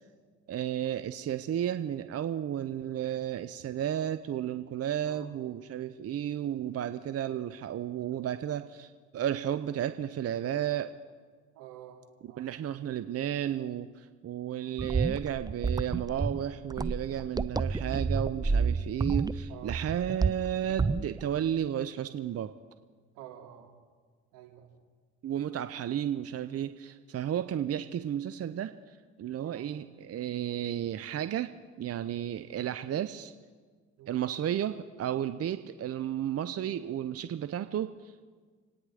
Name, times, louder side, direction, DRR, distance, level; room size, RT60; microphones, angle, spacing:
voice 1, 0.5-11.0 12.2-22.5 25.2-31.5 31.8-33.3 34.1-38.2, right 10 dB, 45° right, 11 dB, 0.8 m, -33 dB
voice 2, 11.6-12.0 12.3-12.5 19.5-19.8 23.2-23.7 24.3-24.7 29.4-29.6 34.0-34.2, right 12 dB, 80° right, 1 dB, 2.8 m, -49 dB
sound 1, 14.8-21.3, right 4 dB, 10° right, 0.5 m, -30 dB
28.0 x 9.7 x 5.0 m, 1.5 s
supercardioid pair, 65°, 33 cm